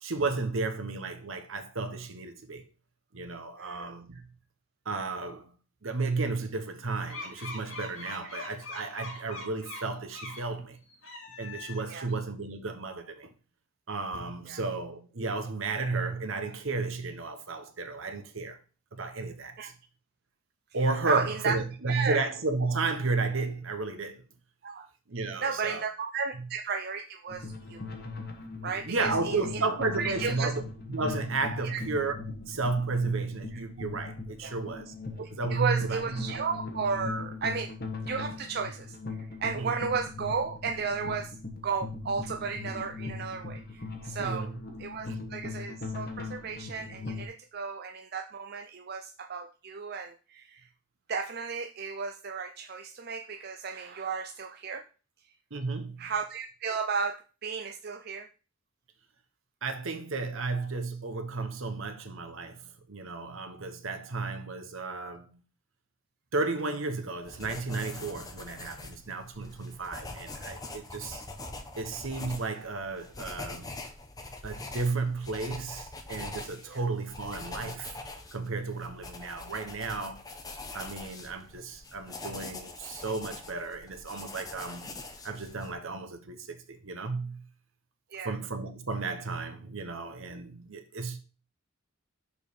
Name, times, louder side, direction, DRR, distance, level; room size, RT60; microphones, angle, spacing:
voice 1, 0.0-2.6 3.1-4.2 4.8-5.5 5.8-10.8 11.4-13.3 13.9-18.6 18.9-19.7 20.7-24.2 25.1-25.8 26.4-26.5 28.9-30.6 30.9-32.2 32.5-34.9 35.3-36.4 39.5-39.8 44.2-44.6 45.0-45.3 55.5-56.1 59.6-65.4 66.3-71.3 71.8-73.7 74.4-78.0 78.3-80.2 80.7-87.4 88.2-91.2, right 3 dB, 70° right, 1.1 m, -33 dB
voice 2, 3.6-4.2 11.9-12.1 14.5-14.6 19.6-19.7 21.1-21.6 21.9-22.2 24.6-24.9 25.4-27.8 28.6-29.4 30.0-30.5 31.6-31.8 33.5-33.6 34.4-34.5 35.2-37.7 38.1-41.4 41.6-44.5 44.8-50.7 51.1-54.8 56.0-58.3 76.7-76.8 88.1-88.4, right 5 dB, 45° right, 0.5 m, -34 dB
sound 1, 7.1-10.5 10.9-12.1, left 2 dB, 65° left, 2.4 m, -42 dB
sound 2, 27.3-47.3, left 3 dB, 45° left, 1.4 m, -40 dB
sound 3, 67.2-85.7, left 2 dB, 15° left, 0.8 m, -43 dB
6.6 x 4.6 x 5.2 m
head